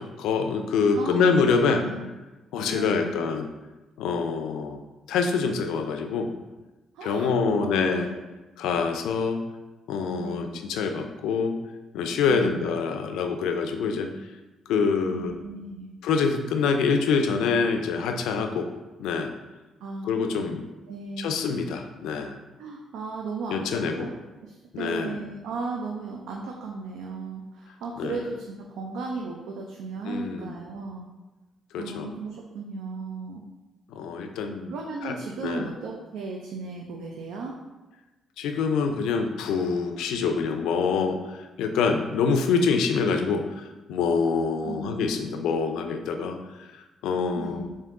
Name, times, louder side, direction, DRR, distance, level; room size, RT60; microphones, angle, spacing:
voice 1, 0.0-1.8 2.5-3.5 4.0-4.8 5.1-6.3 7.0-8.1 8.6-9.4 9.9-11.6 11.9-14.1 14.7-15.3 16.0-18.7 19.0-19.3 20.0-20.6 21.2-22.4 23.5-24.1 24.7-25.2 28.0-28.2 30.1-30.5 31.7-32.1 33.9-34.7 35.0-35.2 35.4-35.7 38.4-47.7, left 5 dB, 90° left, 6 dB, 0.3 m, -25 dB
voice 2, 0.9-2.1 2.7-3.2 6.9-8.2 10.2-10.6 12.3-12.8 15.1-15.9 19.8-20.5 20.9-21.4 22.6-31.1 31.8-33.4 34.7-37.5 44.6-44.9 47.3-47.7, right 4 dB, 90° right, -1 dB, 0.4 m, -36 dB
3.6 x 2.6 x 3.6 m, 1.1 s
cardioid pair, 90°, 0 cm